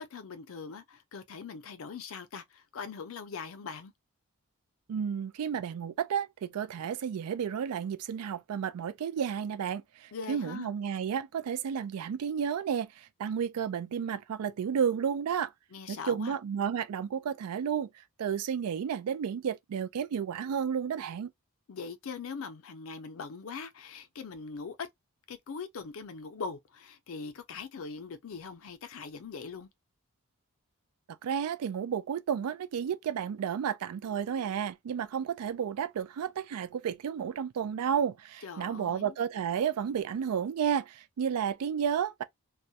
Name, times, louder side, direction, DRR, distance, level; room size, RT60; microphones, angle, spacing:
voice 1, 0.0-3.9 10.1-10.7 15.7-16.4 21.7-24.9 25.3-29.7 38.4-39.2, left 5 dB, 65° left, 0.5 m, -41 dB
voice 2, 4.9-9.8 10.3-12.9 13.2-15.5 15.9-17.9 18.2-21.3 31.2-42.2, right 7 dB, 85° right, 0.3 m, -32 dB
2.3 x 2.1 x 2.7 m
head